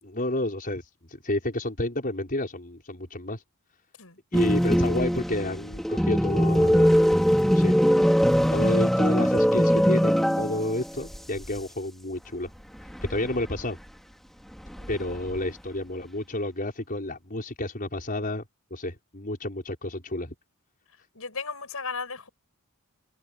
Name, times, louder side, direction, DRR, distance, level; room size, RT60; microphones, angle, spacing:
voice 1, 0.0-3.4 4.3-6.9 7.5-7.8 8.5-12.5 13.1-13.8 14.9-18.4 18.7-20.3, left 1 dB, 40° left, 5.4 m, -30 dB
sound 1, 4.3-10.9 11.1-11.2 12.9-13.6 14.7-15.4, equal, ahead, 2.9 m, -21 dB
voice 2, 21.1-22.3, left 5 dB, 75° left, 6.6 m, -35 dB
head